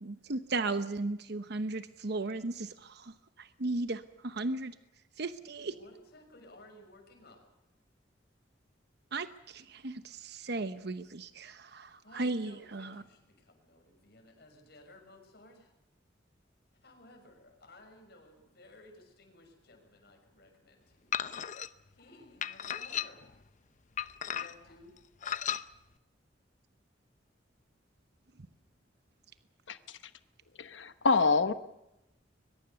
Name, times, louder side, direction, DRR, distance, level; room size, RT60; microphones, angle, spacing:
voice 1, 0.0-4.7 5.2-5.7 9.1-12.9, right 2 dB, 60° right, 11 dB, 1.0 m, -36 dB
voice 2, 5.7-7.5 12.0-15.7 16.8-21.4 21.9-23.3 24.2-24.9, left 1 dB, 60° left, 3 dB, 6.4 m, -57 dB
sound 1, 21.1-21.7 22.4-23.3 24.0-24.7 25.2-25.6, left 9 dB, 45° left, 0.8 m, -35 dB
voice 3, 29.7-30.0 30.6-31.5, left 4 dB, 85° left, 11 dB, 1.0 m, -27 dB
22.5 x 21.5 x 6.9 m, 0.91 s
head